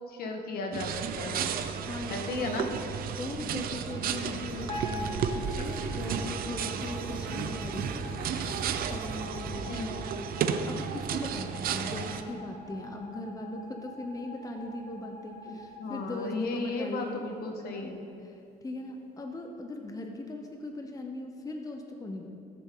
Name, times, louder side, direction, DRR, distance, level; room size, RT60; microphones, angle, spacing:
voice 1, 0.1-1.5 2.1-2.7 5.6-5.9 9.7-10.0 15.5-18.0, left 3 dB, 65° left, 3 dB, 1.5 m, -35 dB
sound 1, 0.7-12.2, right 7 dB, 60° right, 0.7 m, -33 dB
voice 2, 1.8-2.8 3.2-8.2 8.5-9.7 10.7-17.3 17.7-22.3, left 2 dB, 20° left, 3 dB, 0.9 m, -39 dB
sound 2, 4.5-9.7, right 1 dB, 5° right, 2.1 m, -43 dB
sound 3, 4.7-17.0, left 2 dB, 45° left, 2.9 m, -45 dB
17.0 x 7.2 x 3.9 m, 2.6 s
cardioid pair, 110°, 17 cm